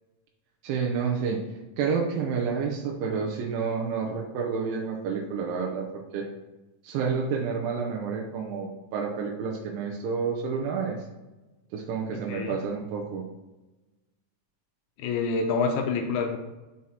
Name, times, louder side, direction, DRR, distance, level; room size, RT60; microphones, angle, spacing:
voice 1, 0.6-1.4 1.8-6.3 6.8-11.0 11.7-13.3, right 5 dB, 80° right, -1 dB, 2.5 m, -29 dB
voice 2, 15.0-16.4, left 4 dB, 80° left, 4 dB, 1.9 m, -27 dB
7.2 x 6.3 x 2.9 m, 1.1 s
omnidirectional pair, 4.0 m